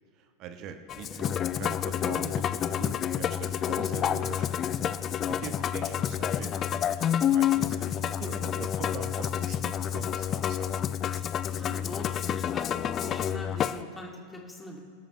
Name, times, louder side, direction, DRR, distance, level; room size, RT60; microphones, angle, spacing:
voice 1, 0.1-4.7 5.3-10.8, right 6 dB, 35° right, 8 dB, 1.2 m, -42 dB
Musical instrument, 0.9-13.8, left 10 dB, 30° left, 0.5 m, -29 dB
voice 2, 11.5-14.8, left 1 dB, 10° left, 0 dB, 2.2 m, -41 dB
26.5 x 12.5 x 3.1 m, 2.1 s
figure-of-eight pair, 90°, 0 cm